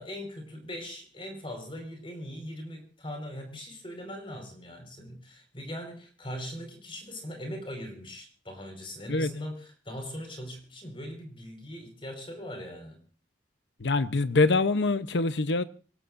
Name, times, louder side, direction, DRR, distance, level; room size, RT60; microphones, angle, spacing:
voice 1, 0.0-13.0, equal, 30° left, 4.9 m, -40 dB
voice 2, 13.8-15.6, left 3 dB, 80° left, 0.9 m, -24 dB
25.5 x 17.0 x 2.6 m
head